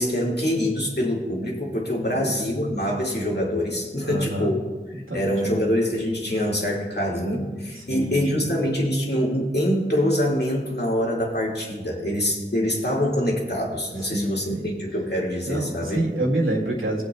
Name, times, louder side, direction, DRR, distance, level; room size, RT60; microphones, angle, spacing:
voice 1, 0.0-4.6 5.1-16.0, equal, 55° left, -2 dB, 2.0 m, -25 dB
voice 2, 4.0-4.6 4.9-5.5 7.8-8.5 14.1-14.7 15.4-17.1, right 1 dB, 80° right, -2 dB, 2.0 m, -28 dB
20.5 x 7.8 x 2.3 m, 1.2 s
wide cardioid pair, 40°, 21 cm